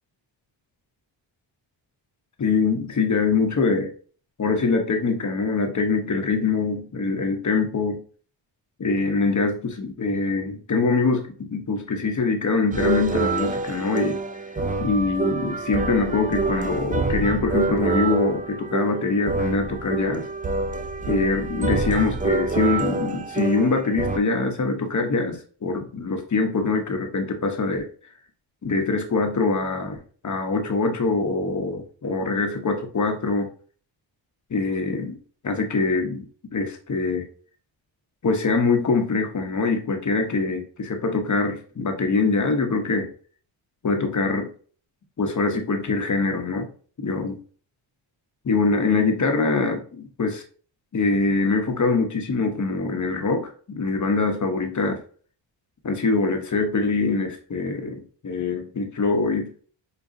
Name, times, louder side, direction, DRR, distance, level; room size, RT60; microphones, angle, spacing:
voice 1, 2.4-3.9 4.4-8.0 8.8-14.2 14.8-20.2 21.1-27.9 28.6-33.5 34.5-35.2 35.4-36.2 36.5-37.3 38.2-43.1 43.8-44.5 45.2-46.7 47.0-47.4 48.4-49.8 50.2-50.4 50.9-55.0 55.8-59.5, left 3 dB, 35° left, 4 dB, 0.9 m, -23 dB
sound 1, 12.7-24.2, right 4 dB, 20° right, 0.3 m, -26 dB
4.9 x 2.3 x 2.6 m, 0.43 s
cardioid pair, 60°, 49 cm